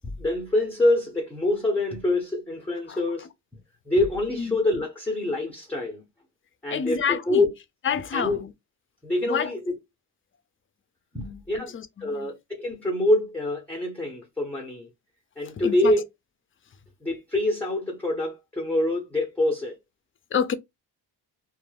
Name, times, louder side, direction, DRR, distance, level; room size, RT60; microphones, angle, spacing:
voice 1, 0.0-3.3 3.9-6.0 6.6-7.5 8.1-8.4 9.0-9.6 11.1-11.7 12.0-14.9 15.4-16.0 17.0-19.8, left 1 dB, 5° left, 0.7 m, -25 dB
voice 2, 2.9-3.3 4.4-4.6 6.7-7.4 7.8-8.5 9.3-9.5 11.2-12.3 15.5-16.0 20.3-20.5, left 7 dB, 30° left, 0.4 m, -29 dB
2.3 x 2.0 x 3.2 m
cardioid pair, 70°, 44 cm